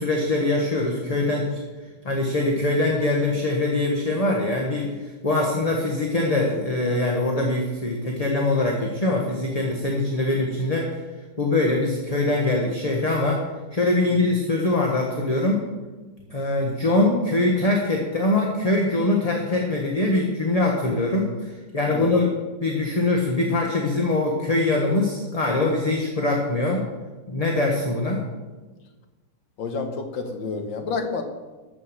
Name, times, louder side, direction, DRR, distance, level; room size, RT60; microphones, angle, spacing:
voice 1, 0.0-1.6 2.0-4.9 5.2-10.9 11.4-13.4 13.7-15.7 16.3-22.3 22.6-26.8 27.3-28.2, left 2 dB, 25° left, 0 dB, 1.1 m, -23 dB
voice 2, 29.6-31.2, left 4 dB, 75° left, 6 dB, 2.0 m, -29 dB
13.0 x 6.2 x 7.3 m, 1.3 s
omnidirectional pair, 2.0 m